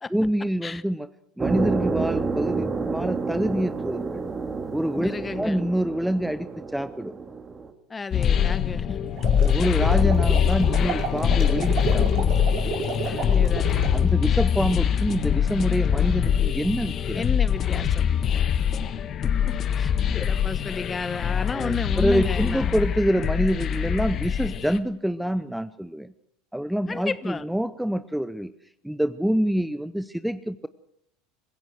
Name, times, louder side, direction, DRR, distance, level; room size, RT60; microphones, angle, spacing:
voice 1, 0.1-1.1 1.4-4.2 4.7-7.2 9.3-12.4 13.9-17.2 21.5-26.1 26.5-28.5 28.8-30.7, equal, ahead, 14 dB, 0.7 m, -26 dB
sound 1, 1.4-7.7, right 4 dB, 25° right, 2.3 m, -29 dB
voice 2, 5.0-5.6 7.9-9.0 13.0-13.9 17.1-18.0 19.2-22.7 26.9-27.4, left 4 dB, 20° left, 16 dB, 1.2 m, -32 dB
sound 2, 8.1-24.8, left 8 dB, 40° left, 1.5 m, -23 dB
sound 3, 9.0-14.0, right 4 dB, 50° right, 5.2 m, -31 dB
26.0 x 16.0 x 6.3 m, 0.74 s
hypercardioid pair, 80°, 0 cm